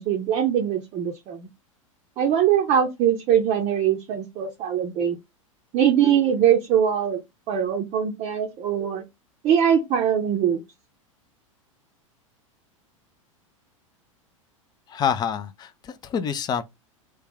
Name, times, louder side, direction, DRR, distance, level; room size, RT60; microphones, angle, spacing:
voice 1, 0.0-1.5 2.2-5.2 5.7-7.2 7.5-9.0 9.4-10.6, right 9 dB, 35° right, 0.6 m, -22 dB
voice 2, 14.9-16.6, left 7 dB, 25° left, 0.4 m, -27 dB
3.3 x 2.3 x 3.4 m
figure-of-eight pair, 90°, 17 cm